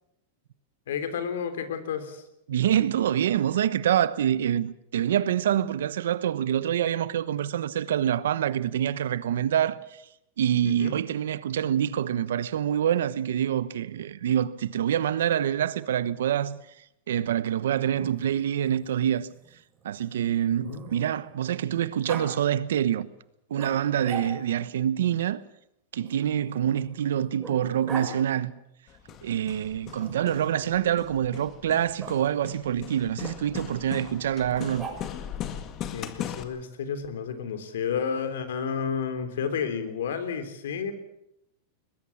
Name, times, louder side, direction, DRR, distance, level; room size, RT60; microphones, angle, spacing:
voice 1, 0.9-2.2 10.6-11.0 20.6-20.8 35.9-41.0, left 6 dB, 85° left, 3.4 m, -31 dB
voice 2, 2.5-9.8 10.4-16.6 17.1-19.3 19.8-23.1 23.5-25.4 25.9-28.5 29.2-34.8, right 10 dB, 85° right, 1.1 m, -26 dB
Growling, 18.0-21.4 22.1-22.3 23.5-24.6 26.0-28.1 30.0-30.7 32.0-32.1 34.5-35.3, right 5 dB, 20° right, 7.1 m, -41 dB
Hammer, 28.9-36.4, left 10 dB, 35° left, 1.9 m, -39 dB
22.0 x 20.5 x 7.2 m
supercardioid pair, 140°, 0 cm